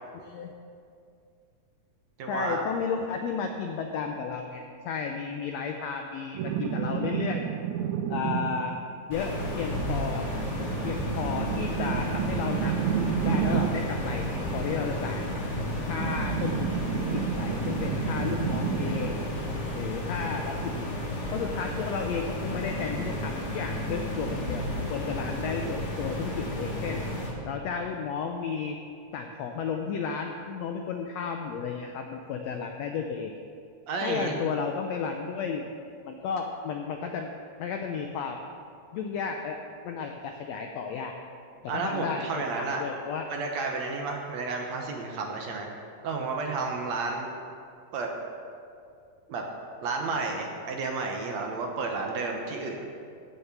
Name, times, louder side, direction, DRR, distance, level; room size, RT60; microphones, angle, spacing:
voice 1, 0.1-0.5 2.3-7.5 8.1-8.7 9.1-10.2 10.8-15.2 15.9-19.2 19.7-20.9 21.3-27.0 27.4-28.8 29.1-33.3 34.0-35.7 36.1-37.3 37.6-38.4 38.9-39.6 39.8-41.1 41.6-42.2 42.6-43.3, left 6 dB, 80° left, 3 dB, 1.5 m, -33 dB
voice 2, 2.2-2.7 33.9-34.4 41.7-42.8 43.3-45.7 46.0-47.3 47.9-48.1 49.3-49.4 49.8-52.9, right 4 dB, 65° right, 1 dB, 2.0 m, -31 dB
sound 1, 6.3-8.8 10.4-13.9 15.7-19.3 20.9-21.0, right 8 dB, 85° right, 1.6 m, -31 dB
sound 2, 9.1-27.3, left 1 dB, 60° left, 4.0 m, -32 dB
16.0 x 6.4 x 6.1 m, 2.4 s
omnidirectional pair, 3.8 m